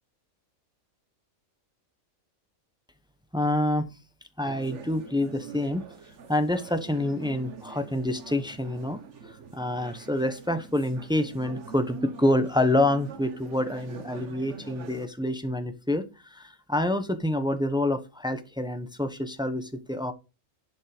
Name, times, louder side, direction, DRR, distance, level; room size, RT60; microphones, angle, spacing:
voice 1, 3.3-3.9 4.4-5.9 6.3-9.0 9.3-20.1, left 1 dB, 5° right, 9 dB, 0.9 m, -27 dB
sound 1, 4.4-15.1, right 5 dB, 60° right, 1.4 m, -44 dB
11.0 x 5.4 x 5.1 m, 0.30 s
omnidirectional pair, 1.4 m